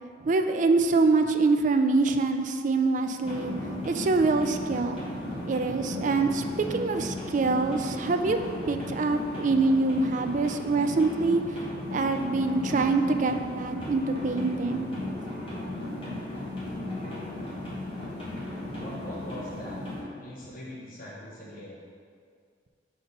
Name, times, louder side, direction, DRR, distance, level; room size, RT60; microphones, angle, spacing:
voice 1, 0.2-3.5 3.8-5.0 5.5-6.4 6.7-8.4 8.7-11.6 11.9-14.9, right 3 dB, 45° right, 7 dB, 0.4 m, -25 dB
sound 1, 3.2-20.0, left 1 dB, 30° left, 1.4 m, -36 dB
voice 2, 18.8-19.8 20.2-21.8, left 1 dB, 50° left, -5 dB, 0.9 m, -42 dB
5.4 x 4.3 x 5.1 m, 2.1 s
head